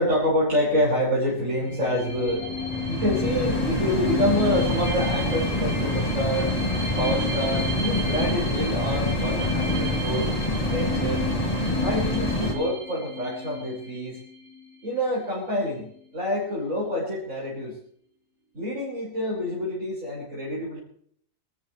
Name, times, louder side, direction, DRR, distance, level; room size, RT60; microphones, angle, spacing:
voice 1, 0.0-2.5 2.9-6.5 7.0-10.3 10.7-11.2 11.8-14.2 14.8-17.8 18.5-20.8, equal, 70° right, -7 dB, 6.3 m, -27 dB
sound 1, 1.3-12.5, left 1 dB, 25° left, 2.8 m, -27 dB
sound 2, 1.6-15.0, left 3 dB, 50° right, 4.1 m, -33 dB
27.0 x 13.5 x 3.4 m, 0.65 s
omnidirectional pair, 1.4 m